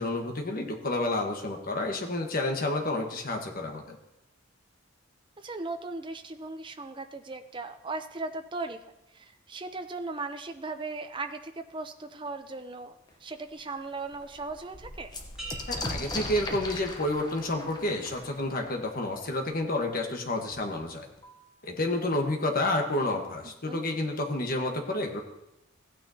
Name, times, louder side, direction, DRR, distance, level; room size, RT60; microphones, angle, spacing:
voice 1, 0.0-4.0 15.7-21.1 21.6-25.2, left 2 dB, 45° left, 2 dB, 1.3 m, -30 dB
voice 2, 5.4-15.1 23.7-23.8, right 3 dB, 25° right, 7 dB, 0.6 m, -38 dB
sound 1, 13.1-13.2 13.6-13.7 14.0-19.6 20.5-20.6 20.9-21.5, left 2 dB, 20° left, 0.9 m, -39 dB
sound 2, 15.4-17.2 17.7-18.1, right 2 dB, 5° right, 2.0 m, -46 dB
15.5 x 9.0 x 2.8 m, 0.93 s
head